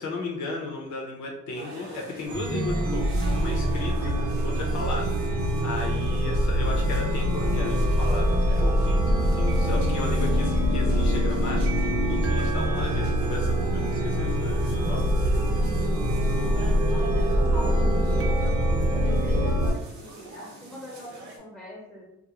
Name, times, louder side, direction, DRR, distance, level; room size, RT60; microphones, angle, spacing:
voice 1, 0.0-15.4, left 3 dB, 70° left, -1 dB, 0.6 m, -35 dB
sound 1, 1.5-21.4, right 3 dB, 75° right, 0.8 m, -44 dB
Chime, 2.3-19.7, equal, 50° right, 0.8 m, -24 dB
sound 2, 10.6-18.3, equal, 20° right, 0.4 m, -40 dB
voice 2, 16.9-18.6 18.9-22.0, left 1 dB, 5° left, -3 dB, 0.8 m, -41 dB
2.4 x 2.1 x 2.9 m, 0.86 s
cardioid pair, 90°, 30 cm